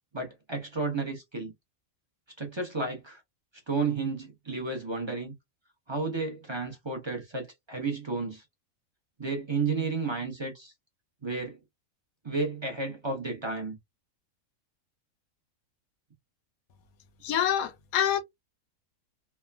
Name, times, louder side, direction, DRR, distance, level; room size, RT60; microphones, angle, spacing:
voice 1, 0.1-1.5 2.4-3.2 3.7-5.3 5.9-8.4 9.2-10.7 11.2-11.6 12.2-13.8, right 4 dB, 30° right, 0.5 m, -32 dB
voice 2, 17.2-18.2, left 9 dB, 80° left, 1.1 m, -26 dB
3.2 x 2.1 x 2.2 m
omnidirectional pair, 1.5 m